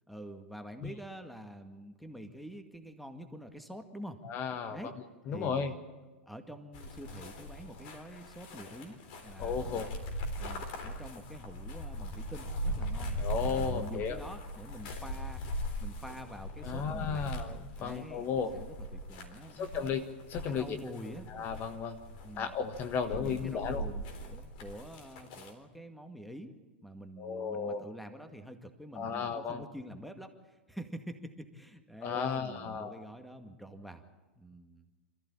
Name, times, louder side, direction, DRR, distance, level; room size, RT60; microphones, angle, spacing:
voice 1, 0.1-4.2 4.7-4.9 5.3-5.8 6.3-9.7 10.4-13.2 13.4-15.4 15.8-17.4 17.8-19.9 20.4-21.4 22.2-22.6 23.1-34.0 34.4-34.9, equal, ahead, 7 dB, 2.0 m, -47 dB
voice 2, 4.2-4.8 5.3-5.7 9.4-9.9 13.2-14.1 16.6-18.5 19.6-20.0 20.3-20.8 21.3-22.0 22.4-23.8 27.2-27.8 28.9-29.6 32.0-32.9, left 6 dB, 35° left, 8 dB, 1.4 m, -34 dB
sound 1, 6.7-25.5, equal, 50° left, 3.8 m, -40 dB
26.5 x 14.5 x 8.7 m, 1.3 s
figure-of-eight pair, 90°, 6 cm